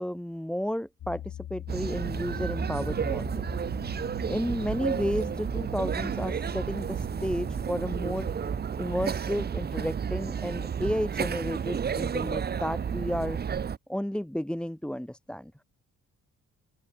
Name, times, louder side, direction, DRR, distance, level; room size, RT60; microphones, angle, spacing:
voice 1, 0.0-3.3 4.3-8.3 8.8-13.4 13.9-15.5, equal, 5° left, 4.2 m, -32 dB
Piano, 1.0-8.7, left 12 dB, 70° left, 2.0 m, -43 dB
sound 1, 1.7-13.8, right 7 dB, 35° right, 0.7 m, -31 dB
open air
cardioid pair, 90°, 30 cm